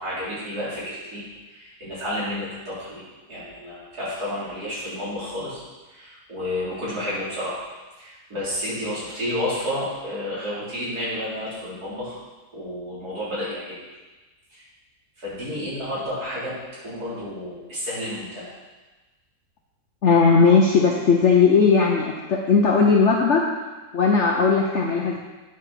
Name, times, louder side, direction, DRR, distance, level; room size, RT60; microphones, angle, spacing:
voice 1, 0.0-5.6 5.9-7.6 8.0-12.2 12.5-13.8 14.5-14.7 15.2-16.6 16.8-18.5, left 1 dB, 70° right, -9 dB, 4.3 m, -31 dB
voice 2, 20.0-23.4 23.9-25.2, left 5 dB, 50° left, -1 dB, 1.0 m, -17 dB
9.3 x 6.3 x 5.9 m, 1.2 s
omnidirectional pair, 1.7 m